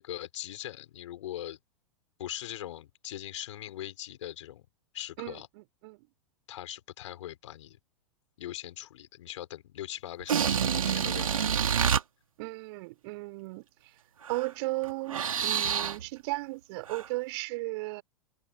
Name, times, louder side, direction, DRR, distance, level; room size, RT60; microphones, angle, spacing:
voice 1, 0.0-1.6 2.2-4.6 4.9-5.5 6.5-7.8 8.4-11.7, left 13 dB, 55° left, 5.7 m, -41 dB
voice 2, 5.2-6.1 12.4-13.6 14.3-18.0, right 23 dB, 45° right, 4.4 m, -35 dB
sound 1, 10.2-12.0 14.2-14.5 14.8-16.1 16.9-17.1, right 8 dB, 65° right, 2.5 m, -27 dB
figure-of-eight pair, 100°, 19 cm